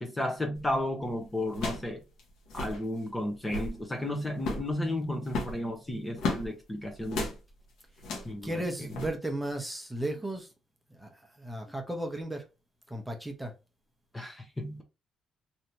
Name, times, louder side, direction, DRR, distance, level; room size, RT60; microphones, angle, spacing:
voice 1, 0.0-2.0 2.5-7.3 8.2-8.9 14.1-14.8, left 1 dB, 20° left, 0.9 m, -33 dB
sound 1, 0.6-0.8 1.5-1.9 2.2-2.3 2.5-2.8 3.3-3.8 4.4-4.7 5.3-6.5 7.1-7.4 8.0-8.4 8.9-9.1, left 3 dB, 85° left, 1.2 m, -34 dB
voice 2, 8.4-10.5 10.9-12.4 12.9-13.5, right 1 dB, 5° right, 1.0 m, -35 dB
3.2 x 2.8 x 2.7 m
cardioid pair, 90°, 0 cm